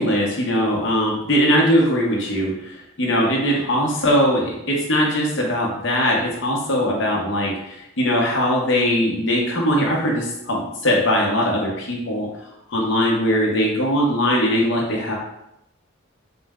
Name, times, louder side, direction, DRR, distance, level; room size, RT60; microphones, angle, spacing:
voice 1, 0.0-12.3 12.7-15.1, equal, 55° left, -2 dB, 0.9 m, -20 dB
4.2 x 2.1 x 3.5 m, 0.84 s
head